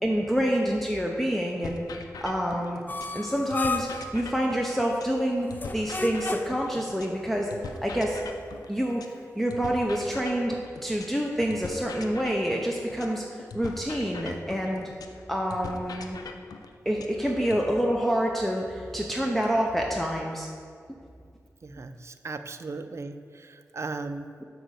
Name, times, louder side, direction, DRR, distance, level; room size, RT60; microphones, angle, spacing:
voice 1, 0.0-1.8 2.2-2.8 3.1-5.5 5.7-7.5 7.8-8.2 8.7-9.0 9.3-10.6 10.8-14.9 15.3-16.2 16.9-20.5 20.9-21.0, equal, 5° left, -1 dB, 0.8 m, -27 dB
sound 1, 1.6-3.2 3.5-7.2 7.5-11.2 11.5-15.2 15.5-17.6, left 4 dB, 90° left, 0.5 m, -41 dB
sound 2, 2.9-4.1 5.5-6.7, left 4 dB, 30° left, 0.4 m, -33 dB
voice 2, 21.6-24.3, right 3 dB, 45° right, 8 dB, 0.4 m, -37 dB
6.2 x 4.8 x 6.6 m, 2.2 s
cardioid pair, 55°, 6 cm